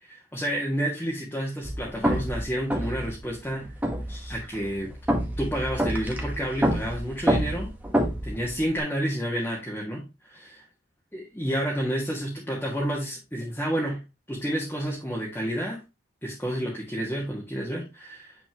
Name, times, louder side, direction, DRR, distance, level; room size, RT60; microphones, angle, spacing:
voice 1, 0.0-3.7 4.1-4.9 5.4-7.7 8.2-10.7 11.1-14.0 14.3-15.8 16.2-18.4, equal, 10° left, -4 dB, 1.5 m, -30 dB
sound 1, 1.6-8.8, equal, 10° right, 1.2 m, -28 dB
9.1 x 4.3 x 2.9 m, 0.25 s
head